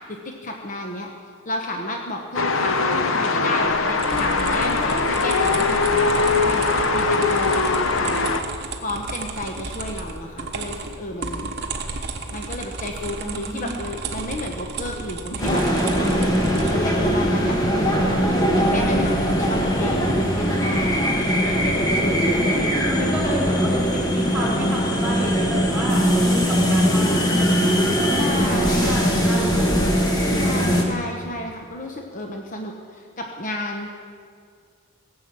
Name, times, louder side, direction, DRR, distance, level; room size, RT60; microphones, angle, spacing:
voice 1, 0.1-1.1 1.5-7.6 8.8-11.5 12.3-18.1 18.5-21.3 28.1-29.0 30.3-33.9, left 1 dB, 40° left, 1 dB, 1.0 m, -32 dB
sound 1, 2.3-8.4, left 3 dB, 65° left, 0.9 m, -21 dB
sound 2, 3.6-16.7, right 3 dB, 50° right, 1.2 m, -33 dB
voice 2, 13.2-13.7 22.4-29.7, equal, 5° right, -7 dB, 3.8 m, -30 dB
sound 3, 15.4-30.8, equal, 20° left, 1.6 m, -20 dB
17.0 x 7.7 x 7.5 m, 2.1 s
head